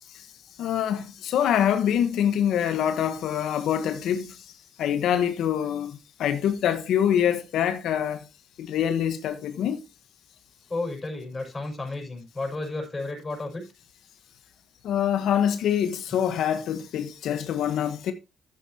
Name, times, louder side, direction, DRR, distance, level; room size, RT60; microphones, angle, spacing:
voice 1, 0.6-4.4 4.8-8.2 8.6-9.8 14.8-18.1, left 9 dB, 80° left, 1.3 m, -25 dB
voice 2, 10.7-13.6, left 2 dB, 25° left, 5.6 m, -32 dB
11.5 x 8.8 x 2.9 m
cardioid pair, 90°, 0 cm